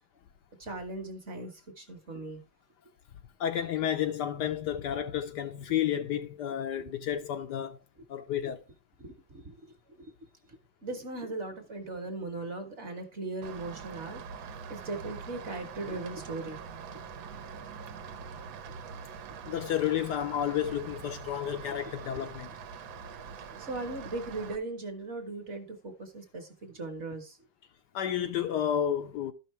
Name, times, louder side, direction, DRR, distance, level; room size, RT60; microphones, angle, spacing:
voice 1, 0.6-2.4 6.8-6.9 9.0-16.7 18.7-18.8 20.7-20.8 21.7-21.9 23.0-27.5, right 2 dB, 40° right, 1.3 m, -39 dB
voice 2, 3.4-7.8 8.1-8.6 19.5-22.5 27.9-29.3, left 10 dB, 75° left, 1.1 m, -31 dB
Rain, 13.4-24.6, right 6 dB, 85° right, 1.6 m, -44 dB
13.0 x 5.5 x 3.1 m
omnidirectional pair, 2.1 m